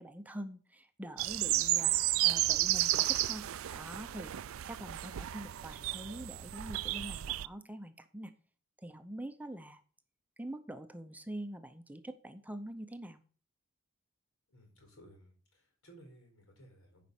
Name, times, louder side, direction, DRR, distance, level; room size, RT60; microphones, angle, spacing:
voice 1, 0.0-1.9 2.2-3.5 3.7-4.3 4.7-8.3 8.8-9.8 10.4-13.2, right 1 dB, 10° right, 8 dB, 0.6 m, -45 dB
sound 1, 1.2-7.5, right 16 dB, 75° right, 0.4 m, -32 dB
voice 2, 14.5-17.1, right 1 dB, 85° left, 3 dB, 4.3 m, -58 dB
9.5 x 5.1 x 7.1 m, 0.42 s
head